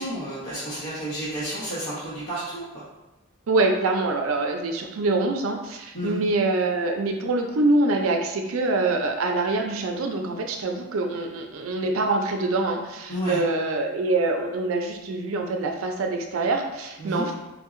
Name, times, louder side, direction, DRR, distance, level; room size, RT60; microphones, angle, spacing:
voice 1, 0.0-2.8 5.9-6.2 13.1-13.4 17.0-17.2, right 1 dB, 60° left, -12 dB, 1.2 m, -31 dB
voice 2, 3.5-17.3, right 2 dB, 75° right, 3 dB, 0.4 m, -25 dB
4.5 x 2.7 x 2.5 m, 1.0 s
head